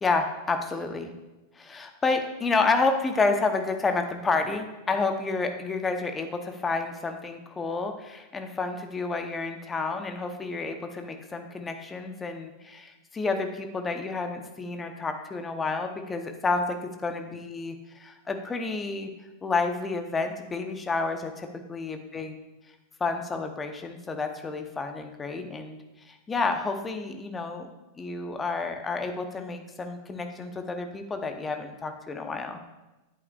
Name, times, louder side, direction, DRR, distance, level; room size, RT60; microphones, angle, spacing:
voice 1, 0.0-1.1 1.6-19.1 19.4-22.4 23.0-25.8 26.1-27.7 28.0-32.6, left 3 dB, 15° left, 6 dB, 0.8 m, -30 dB
9.8 x 8.3 x 2.4 m, 1.1 s
figure-of-eight pair, 90°, 0 cm